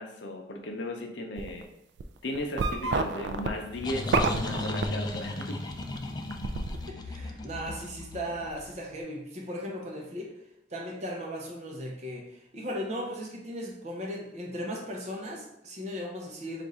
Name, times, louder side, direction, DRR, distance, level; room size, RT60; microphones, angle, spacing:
voice 1, 0.0-1.7 2.2-5.6, left 1 dB, 85° left, 3 dB, 0.6 m, -36 dB
sound 1, 1.4-1.6 2.0-5.5 5.8-6.8, right 3 dB, 70° right, 0.3 m, -29 dB
sound 2, 3.3-8.9, left 2 dB, 25° left, 0.3 m, -36 dB
voice 2, 6.7-10.3 10.7-16.6, equal, 40° right, 0 dB, 0.8 m, -37 dB
3.5 x 2.5 x 4.1 m, 0.82 s
head